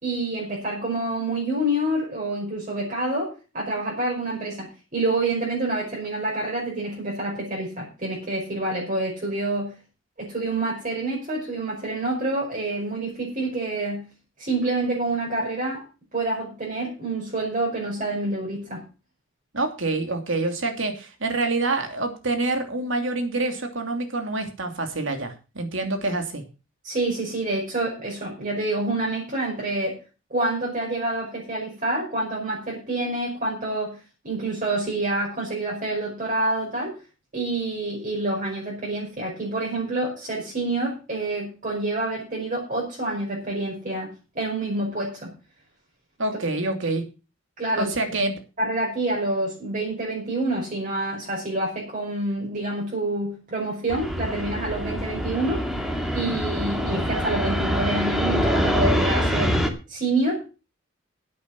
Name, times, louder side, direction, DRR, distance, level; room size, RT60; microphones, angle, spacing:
voice 1, 0.0-9.7 10.2-14.0 14.4-15.8 16.1-18.8 26.8-30.0 30.3-34.0 34.2-36.9 37.3-44.1 44.3-45.3 47.6-47.9 48.6-55.6 56.1-59.6 59.9-60.5, right 2 dB, 40° right, -4 dB, 5.5 m, -27 dB
voice 2, 19.5-26.4 46.2-47.0 47.8-48.4, right 2 dB, 70° right, 5 dB, 2.9 m, -26 dB
Fixed-wing aircraft airplane, 53.9-59.7, equal, ahead, 2.1 m, -25 dB
10.5 x 8.5 x 7.0 m, 0.33 s
head